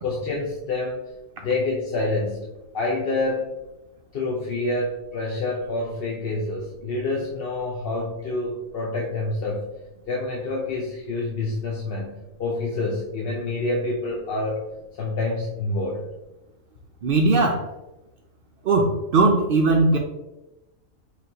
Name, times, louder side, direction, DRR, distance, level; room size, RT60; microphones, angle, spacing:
voice 1, 0.0-1.1 1.4-2.5 2.7-3.5 4.1-9.6 10.1-14.6 15.0-16.0, left 2 dB, 55° left, -3 dB, 0.7 m, -27 dB
voice 2, 17.0-17.6 18.7-20.0, right 3 dB, 70° right, 2 dB, 0.5 m, -19 dB
5.6 x 3.2 x 2.8 m, 0.99 s
omnidirectional pair, 1.5 m